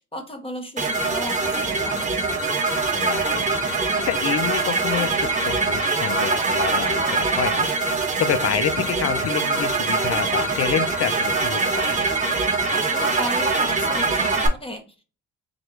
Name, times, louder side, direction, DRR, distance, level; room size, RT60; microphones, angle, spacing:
voice 1, 0.1-2.1 12.7-15.0, equal, 20° left, 1.0 m, -34 dB
sound 1, 0.8-14.5, right 3 dB, 25° right, 1.2 m, -23 dB
voice 2, 2.9-12.0, left 10 dB, 50° left, 0.5 m, -28 dB
3.8 x 3.1 x 3.1 m
cardioid pair, 90°, 30 cm